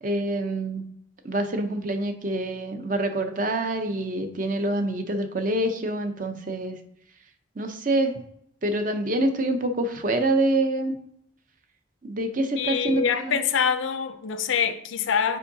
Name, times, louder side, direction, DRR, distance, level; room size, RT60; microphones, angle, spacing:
voice 1, 0.0-0.8 1.2-6.8 7.6-8.2 8.6-10.9 12.0-13.4, right 1 dB, 40° right, 0.6 m, -26 dB
voice 2, 12.6-15.4, left 7 dB, 75° left, 0.5 m, -25 dB
8.4 x 4.6 x 2.7 m
head